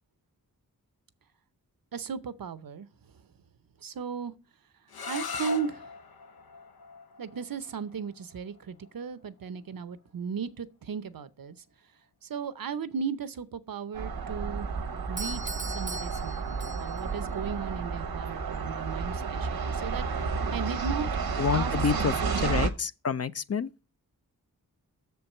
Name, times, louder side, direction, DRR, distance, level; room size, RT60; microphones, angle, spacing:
voice 1, 1.9-2.9 3.8-4.3 5.1-5.9 7.2-11.6 12.2-14.7 15.1-15.4 15.7-21.1 21.5-22.4, right 6 dB, 70° right, 0.7 m, -36 dB
sound 1, 4.9-10.6, left 4 dB, 80° left, 0.7 m, -42 dB
sound 2, 13.9-22.7, right 5 dB, 85° right, 1.0 m, -31 dB
Doorbell, 15.2-17.2, right 2 dB, 20° right, 0.5 m, -39 dB
voice 2, 21.4-23.7, left 6 dB, 45° left, 0.4 m, -28 dB
6.9 x 4.6 x 6.5 m
wide cardioid pair, 85°, 36 cm